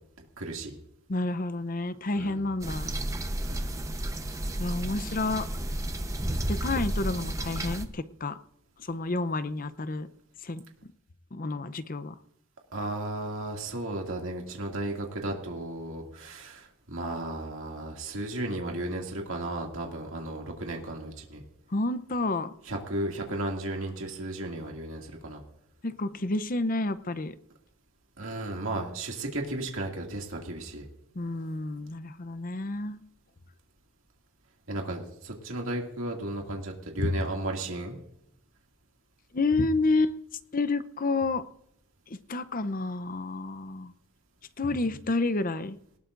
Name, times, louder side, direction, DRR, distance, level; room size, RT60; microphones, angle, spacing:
voice 1, 0.4-0.8 2.2-2.4 3.4-3.7 12.7-21.4 22.7-25.4 28.2-30.9 34.7-38.0, right 1 dB, 70° right, 0 dB, 2.4 m, -34 dB
voice 2, 1.1-2.9 4.6-5.5 6.5-8.4 8.9-10.1 10.4-10.6 11.3-12.1 21.7-22.5 25.8-27.3 31.2-33.0 37.0-37.1 39.3-40.2 40.5-41.4 42.1-43.9 44.6-45.8, left 2 dB, 40° left, 13 dB, 0.7 m, -29 dB
sound 1, 2.6-7.8, right 1 dB, 15° right, 0.9 m, -32 dB
19.5 x 18.0 x 2.6 m, 0.75 s
head